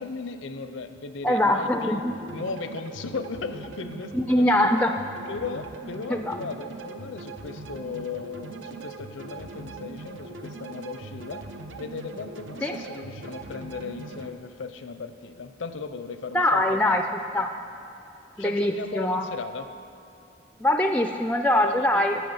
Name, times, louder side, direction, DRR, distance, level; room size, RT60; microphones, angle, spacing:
voice 1, 0.0-4.7 5.3-11.4 11.8-17.4 18.4-19.7 21.6-22.1, left 4 dB, 80° left, 9 dB, 0.6 m, -37 dB
voice 2, 1.2-2.1 4.1-4.9 6.1-6.4 12.6-12.7 16.3-17.0 17.3-17.5 18.4-19.3 20.6-22.2, left 1 dB, 10° left, 5 dB, 0.3 m, -22 dB
sound 1, 1.9-14.3, right 3 dB, 80° right, 0.6 m, -41 dB
9.3 x 6.1 x 7.9 m, 2.7 s
head